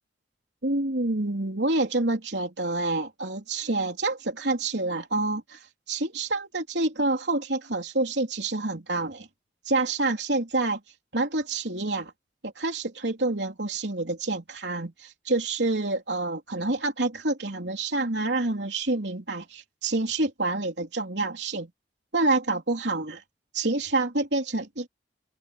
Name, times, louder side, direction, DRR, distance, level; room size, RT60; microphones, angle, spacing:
voice 1, 0.6-9.3 9.7-10.8 11.1-12.1 12.4-21.7 22.1-23.2 23.5-24.9, right 2 dB, 80° right, 3.5 m, -27 dB
open air
head